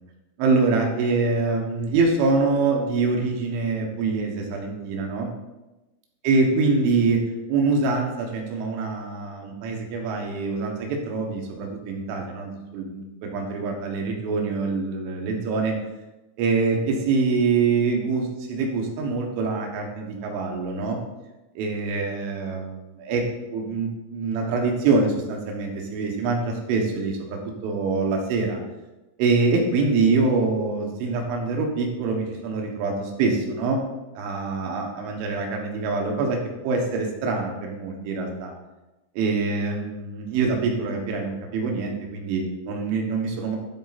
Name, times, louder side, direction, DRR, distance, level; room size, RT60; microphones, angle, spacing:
voice 1, 0.4-5.3 6.2-7.2 7.5-15.7 16.4-21.0 21.6-23.2 23.5-28.6 29.2-33.8 34.2-36.4 36.6-38.5 39.2-43.6, right 4 dB, 90° right, 1 dB, 3.7 m, -25 dB
13.0 x 4.3 x 4.1 m, 1.1 s
omnidirectional pair, 5.4 m